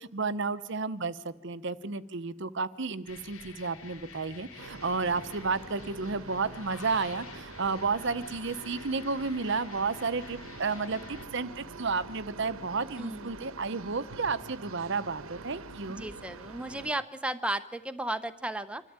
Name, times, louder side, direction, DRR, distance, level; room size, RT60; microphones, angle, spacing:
voice 1, 0.1-16.0, right 4 dB, 55° right, 15 dB, 0.8 m, -32 dB
sound 1, 3.0-11.3, left 4 dB, 90° left, 3.2 m, -49 dB
sound 2, 4.6-16.9, right 3 dB, 80° right, 1.2 m, -45 dB
voice 2, 13.0-13.3 16.0-18.8, right 1 dB, 5° right, 10 dB, 0.8 m, -34 dB
25.5 x 13.0 x 8.8 m, 0.91 s
head